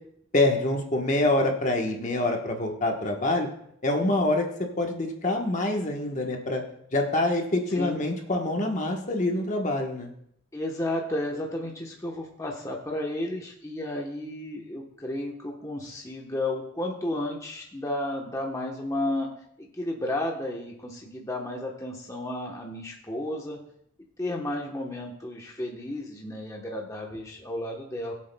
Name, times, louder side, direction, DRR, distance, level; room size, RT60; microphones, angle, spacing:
voice 1, 0.3-3.5 3.8-6.6 6.9-10.1, left 2 dB, 35° left, 2 dB, 1.2 m, -26 dB
voice 2, 10.5-19.3 19.6-23.6 24.2-28.1, left 1 dB, 15° left, -1 dB, 1.0 m, -32 dB
21.0 x 7.5 x 2.3 m, 0.71 s
head